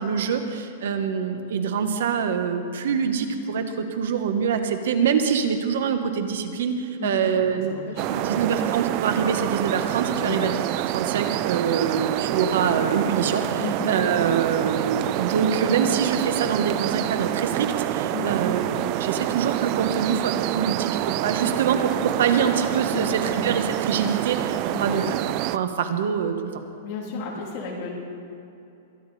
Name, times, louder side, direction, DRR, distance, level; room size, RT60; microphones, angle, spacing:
voice 1, 0.0-7.8 8.2-10.5 10.9-20.9 21.2-25.2 25.5-26.6, right 6 dB, 65° right, 8 dB, 1.3 m, -25 dB
voice 2, 7.5-8.5 10.1-10.5 13.6-13.9 18.1-18.4 22.9-23.4 24.7-25.0 26.8-27.9, left 3 dB, 35° left, -3 dB, 3.1 m, -33 dB
sound 1, 8.0-25.6, right 14 dB, 30° right, 0.3 m, -27 dB
23.0 x 10.5 x 4.2 m, 2.6 s
supercardioid pair, 170°, 0 cm